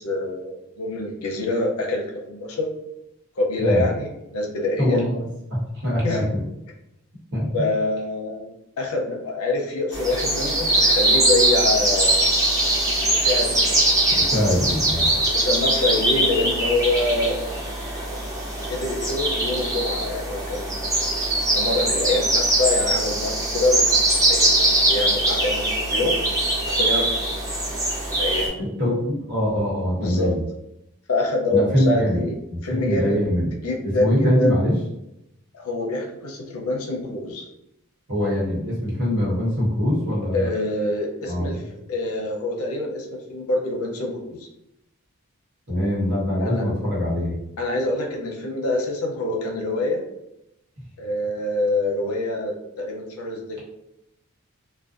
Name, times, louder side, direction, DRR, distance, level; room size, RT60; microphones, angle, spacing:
voice 1, 0.0-2.7 3.4-5.0 6.0-6.3 7.5-12.3 13.0-13.7 15.1-17.5 18.7-20.8 21.3-23.9 24.3-24.5 24.9-26.2 26.7-27.6 28.1-28.5 30.0-30.3 31.1-32.3 32.6-33.2 33.5-34.6 35.5-37.5 40.3-41.6 41.9-44.5 46.4-46.6 47.6-50.0 51.0-53.6, left 2 dB, 75° left, 0 dB, 0.5 m, -25 dB
voice 2, 4.8-6.5 7.3-7.5 14.1-15.2 28.6-30.3 31.5-32.2 32.5-33.5 34.0-34.8 38.1-40.5 41.3-41.6 45.7-47.4, equal, 50° right, -6 dB, 1.0 m, -23 dB
sound 1, 9.9-28.5, right 1 dB, 15° right, 0.5 m, -22 dB
2.5 x 2.1 x 2.4 m, 0.86 s
head